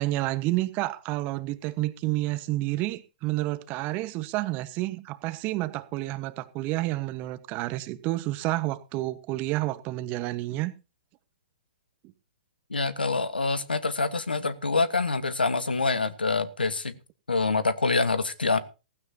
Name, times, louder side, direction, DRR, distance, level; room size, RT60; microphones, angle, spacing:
voice 1, 0.0-10.7, right 17 dB, 35° right, 1.3 m, -29 dB
voice 2, 12.7-16.9 17.3-18.6, left 3 dB, 90° left, 1.4 m, -26 dB
15.5 x 15.5 x 2.8 m
hypercardioid pair, 115°, 5 cm